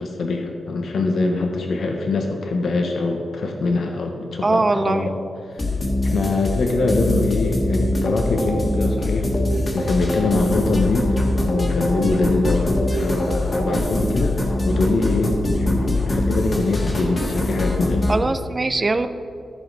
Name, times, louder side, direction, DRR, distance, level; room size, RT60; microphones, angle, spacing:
voice 1, 0.0-5.1 5.5-5.7 6.1-9.3 9.7-18.1, left 3 dB, 70° left, 3 dB, 0.9 m, -23 dB
voice 2, 4.4-5.1 18.1-19.1, right 2 dB, 25° right, 10 dB, 0.4 m, -21 dB
sound 1, 5.6-18.1, left 1 dB, 35° left, 1.5 m, -22 dB
14.0 x 5.1 x 4.0 m, 2.5 s
wide cardioid pair, 110°, 0 cm